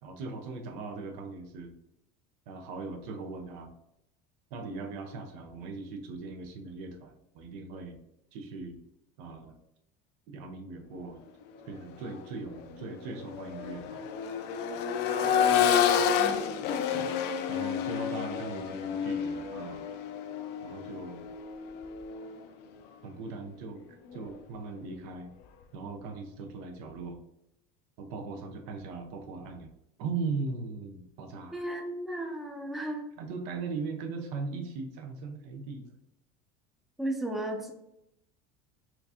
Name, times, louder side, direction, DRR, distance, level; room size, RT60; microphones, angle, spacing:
voice 1, 0.0-1.7 2.5-3.7 4.5-8.0 8.3-8.8 9.2-9.6 10.3-11.2 11.7-14.1 16.9-17.1 17.5-19.8 20.6-21.2 23.0-23.8 24.1-25.3 25.7-27.2 28.0-29.7 30.0-31.7 33.2-36.0, right 4 dB, 80° right, 4 dB, 0.7 m, -39 dB
Accelerating revving vroom, 11.9-12.1 12.5-22.4 24.1-24.2, left 8 dB, 60° left, 0.4 m, -29 dB
voice 2, 31.5-33.1 37.0-37.7, right 1 dB, ahead, 3 dB, 0.5 m, -34 dB
4.4 x 2.5 x 2.7 m, 0.82 s
supercardioid pair, 115°, 20 cm